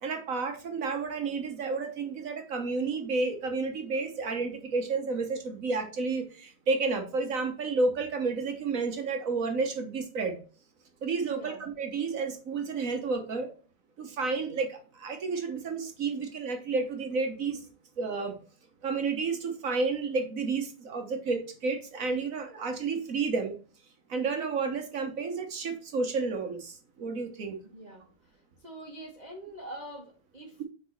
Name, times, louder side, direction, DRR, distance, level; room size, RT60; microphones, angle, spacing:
voice 1, 0.0-10.4 11.0-13.5 14.0-17.6 18.0-18.3 18.8-23.6 24.1-27.6, right 4 dB, 50° right, 5 dB, 1.2 m, -31 dB
voice 2, 11.3-11.6 27.7-28.3 28.6-30.6, right 1 dB, 30° right, -1 dB, 0.9 m, -44 dB
5.9 x 4.2 x 5.8 m, 0.39 s
omnidirectional pair, 2.4 m